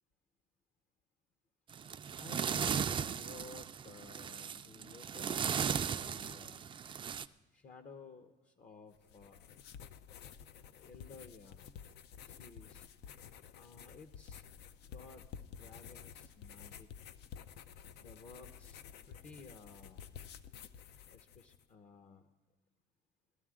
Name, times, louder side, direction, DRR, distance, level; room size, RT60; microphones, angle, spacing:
sound 1, 1.7-7.3, right 7 dB, 30° right, 0.4 m, -37 dB
voice 1, 2.2-6.7 7.5-9.4 10.5-11.6 12.2-12.8 13.5-14.4 14.8-17.1 18.0-20.0 21.1-22.3, left 4 dB, 45° left, 7 dB, 0.8 m, -55 dB
sound 2, 8.9-21.6, left 8 dB, 75° left, 0.6 m, -52 dB
17.5 x 12.5 x 3.7 m, 1.2 s
cardioid pair, 110°, 17 cm